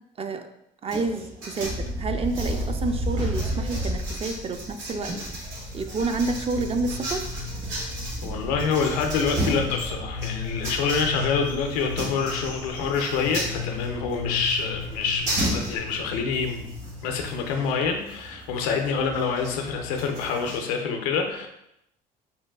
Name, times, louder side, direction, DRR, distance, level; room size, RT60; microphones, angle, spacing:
voice 1, 0.8-5.1 5.7-7.2, right 3 dB, 30° right, 7 dB, 0.4 m, -29 dB
sound 1, 0.9-20.6, right 1 dB, 75° right, 1.3 m, -35 dB
sound 2, 1.6-17.4, left 1 dB, 50° right, 1.3 m, -34 dB
voice 2, 8.2-16.6 17.0-21.5, left 5 dB, 85° left, 4 dB, 0.5 m, -26 dB
3.9 x 2.2 x 2.2 m, 0.81 s
hypercardioid pair, 65°, 20 cm